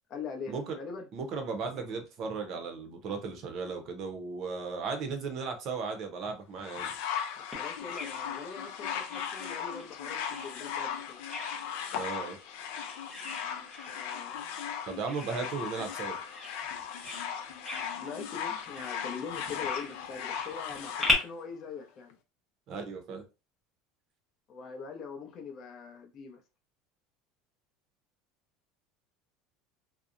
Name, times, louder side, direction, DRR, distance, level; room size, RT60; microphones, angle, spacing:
voice 1, 0.1-1.1 7.3-11.2 13.4-14.5 17.9-22.1 24.5-26.4, left 5 dB, 35° left, 0.6 m, -43 dB
voice 2, 1.1-6.9 11.9-12.4 14.9-16.2 22.7-23.2, right 4 dB, 45° right, 0.6 m, -36 dB
sound 1, 6.6-21.2 22.1-22.2, left 8 dB, 80° left, 0.5 m, -37 dB
Bird vocalization bird call bird song, 7.5-21.1, left 2 dB, 10° right, 0.9 m, -40 dB
2.7 x 2.0 x 2.4 m
cardioid pair, 150°, 0 cm